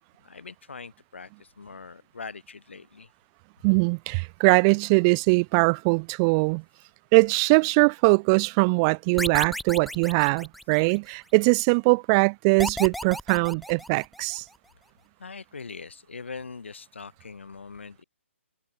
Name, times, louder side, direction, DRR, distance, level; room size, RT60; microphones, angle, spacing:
voice 1, 0.2-3.1 15.2-18.0, left 4 dB, 65° left, 4.4 m, -42 dB
voice 2, 3.6-6.6 7.1-14.4, right 32 dB, 25° right, 0.6 m, -21 dB
sound 1, 9.2-11.1 12.6-14.4, equal, ahead, 3.3 m, -34 dB
figure-of-eight pair, 135°, 7 cm